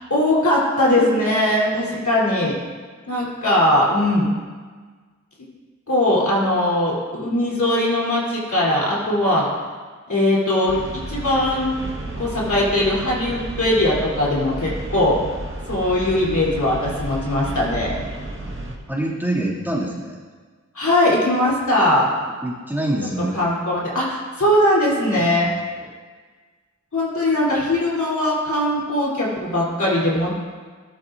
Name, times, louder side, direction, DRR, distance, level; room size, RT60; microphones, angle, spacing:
voice 1, 0.1-2.6 3.1-4.3 5.9-9.5 10.1-10.8 11.1-11.7 12.2-15.2 15.7-17.9 20.7-22.1 23.3-25.5 26.9-30.3, left 1 dB, 70° left, -5 dB, 3.5 m, -20 dB
sound 1, 10.7-18.7, right 1 dB, 40° right, 1.7 m, -32 dB
voice 2, 18.4-20.2 22.4-23.4 25.2-25.5, right 1 dB, 5° right, -5 dB, 2.5 m, -26 dB
13.0 x 12.0 x 2.6 m, 1.5 s
cardioid pair, 45°, 30 cm